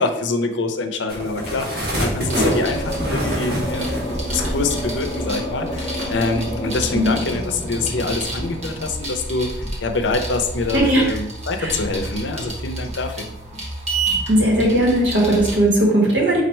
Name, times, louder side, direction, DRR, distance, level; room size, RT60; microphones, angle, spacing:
voice 1, 0.0-9.5 9.8-13.3, left 3 dB, 80° left, 6 dB, 0.5 m, -25 dB
sound 1, 1.1-5.4 5.8-6.0, equal, 55° right, 1.4 m, -25 dB
sound 2, 2.2-10.8 11.6-12.2, left 1 dB, 25° left, 0.7 m, -31 dB
sound 3, 2.2-15.6, right 2 dB, 35° right, 1.1 m, -30 dB
voice 2, 10.7-11.0 11.6-11.7 14.3-16.4, right 1 dB, 80° right, -2 dB, 1.3 m, -17 dB
4.3 x 2.4 x 4.4 m, 0.91 s
head